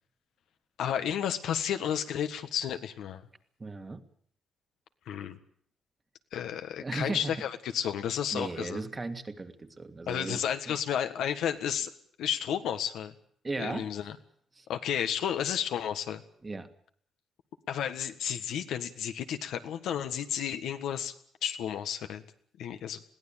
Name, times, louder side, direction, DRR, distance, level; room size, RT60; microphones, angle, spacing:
voice 1, 0.8-3.2 5.1-5.4 6.3-8.8 10.1-11.9 12.2-13.1 13.6-14.2 14.7-16.2 17.7-21.1 21.4-22.2 22.6-23.0, left 9 dB, 80° left, 8 dB, 1.6 m, -32 dB
voice 2, 3.6-4.0 6.8-7.4 8.3-10.4 10.7-10.8 13.4-13.9 14.6-14.7 16.4-16.7, right 3 dB, 25° right, 7 dB, 1.9 m, -36 dB
21.5 x 16.0 x 9.0 m, 0.63 s
cardioid pair, 90°, 0 cm